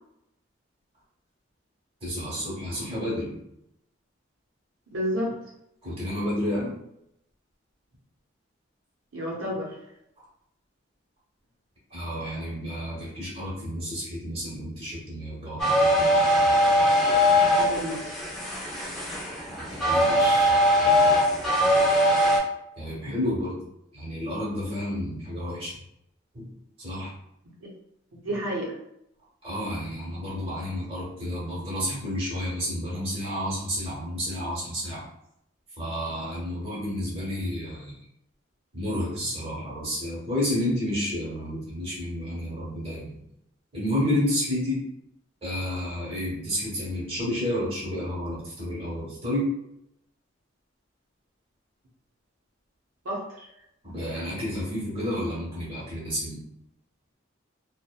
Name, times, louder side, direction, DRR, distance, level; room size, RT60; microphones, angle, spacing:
voice 1, 2.0-3.3 5.8-6.7 11.9-16.1 19.5-21.1 21.9-22.0 22.8-23.5 23.9-25.7 26.3-26.5 26.8-27.1 29.4-35.0 35.8-37.9 38.7-43.1 43.7-44.8 45.4-49.5 53.8-56.4, left 1 dB, 30° right, -7 dB, 1.0 m, -30 dB
voice 2, 4.9-5.4 9.1-9.8 17.5-18.2 27.6-27.7 28.2-28.7 53.0-53.5, equal, 85° right, -4 dB, 0.6 m, -30 dB
sound 1, 15.6-22.4, equal, 5° left, 0.6 m, -21 dB
2.7 x 2.1 x 2.2 m, 0.80 s
head